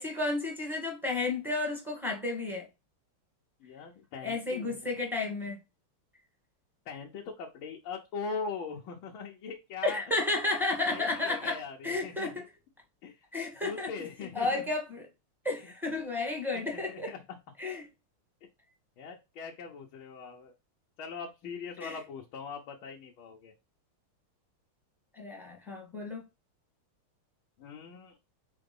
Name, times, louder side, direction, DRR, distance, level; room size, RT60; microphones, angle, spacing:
voice 1, 0.0-2.7 4.2-5.6 9.8-11.6 11.8-12.4 13.3-13.9 14.4-15.1 15.4-17.1 17.6-17.8 21.8-22.0 25.1-26.2, left 2 dB, ahead, 1.8 m, -32 dB
voice 2, 3.6-4.8 6.8-10.0 10.9-12.3 13.0-13.2 13.6-14.7 15.6-15.7 16.5-17.4 19.0-20.5 21.0-23.5 27.6-28.2, left 5 dB, 70° left, 1.6 m, -41 dB
4.7 x 3.8 x 5.3 m
omnidirectional pair, 2.4 m